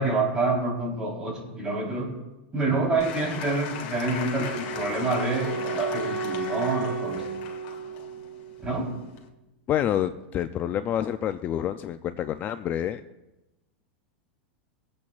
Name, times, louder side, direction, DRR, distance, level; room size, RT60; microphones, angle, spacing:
voice 1, 0.0-2.1 2.5-7.4 8.6-8.9, right 3 dB, 15° right, -2 dB, 3.8 m, -27 dB
Applause / Crowd, 3.0-9.3, left 7 dB, 60° left, 1.9 m, -38 dB
Wind instrument woodwind instrument, 4.0-9.1, right 5 dB, 35° right, 4.0 m, -34 dB
voice 2, 9.7-13.0, left 10 dB, 30° left, 11 dB, 0.4 m, -28 dB
22.5 x 8.5 x 2.4 m, 1.0 s
supercardioid pair, 135°, 6 cm